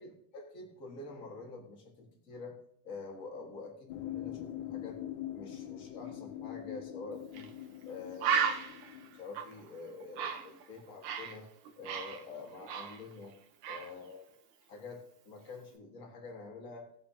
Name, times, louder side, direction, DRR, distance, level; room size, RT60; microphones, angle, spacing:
voice 1, 0.0-5.0 5.3-7.5 7.8-8.5 9.1-11.5 11.8-13.3 13.7-14.2 14.6-16.9, left 3 dB, 30° left, 0 dB, 1.7 m, -47 dB
sound 1, 3.9-9.2, left 12 dB, 85° left, 2.2 m, -43 dB
Bird, 7.3-7.5 7.8-7.9 8.2-11.4 11.7-13.3 13.6-13.9, right 7 dB, 80° right, 2.4 m, -35 dB
19.0 x 6.6 x 2.8 m, 0.75 s
omnidirectional pair, 3.5 m